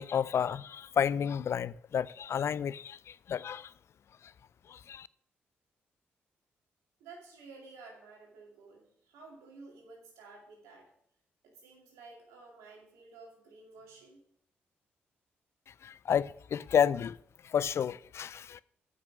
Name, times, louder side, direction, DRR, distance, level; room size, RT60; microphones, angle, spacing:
voice 1, 0.0-3.7 4.7-5.1 15.8-17.2 17.4-18.6, left 8 dB, 60° left, 0.3 m, -31 dB
voice 2, 7.0-10.9 11.4-14.2, right 3 dB, 85° right, 2.4 m, -53 dB
8.2 x 6.2 x 6.0 m
hypercardioid pair, 45°, 5 cm